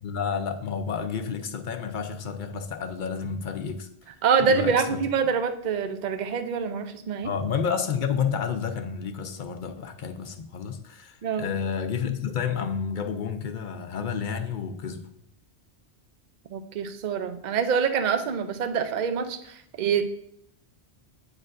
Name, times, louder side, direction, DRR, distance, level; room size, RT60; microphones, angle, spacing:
voice 1, 0.0-3.9 4.4-5.0 7.2-15.0, left 6 dB, 55° left, 7 dB, 0.7 m, -30 dB
voice 2, 4.2-7.3 11.2-11.5 16.5-20.0, right 6 dB, 50° right, 8 dB, 0.6 m, -25 dB
8.8 x 4.9 x 2.5 m, 0.75 s
omnidirectional pair, 1.1 m